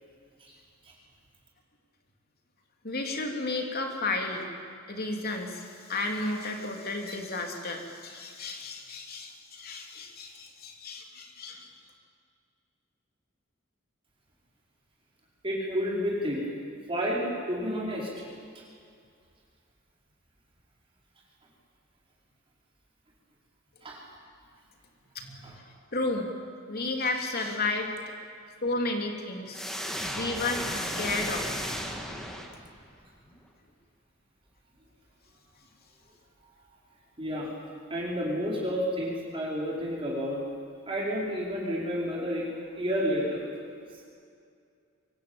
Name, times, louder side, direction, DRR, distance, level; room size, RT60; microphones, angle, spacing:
voice 1, 2.8-4.5 4.9-11.7 25.1-25.5 25.9-26.3 26.7-27.9 28.6-29.7 30.1-31.5, left 2 dB, 50° left, 2 dB, 3.3 m, -32 dB
voice 2, 15.4-16.4 16.9-18.2 23.8-24.0 25.4-25.5 37.2-37.5 37.9-40.4 40.9-42.5 42.8-43.4, equal, 25° right, -4 dB, 4.9 m, -30 dB
sound 1, 29.5-32.9, equal, 5° left, 2.5 m, -34 dB
24.5 x 23.0 x 8.9 m, 2.3 s
head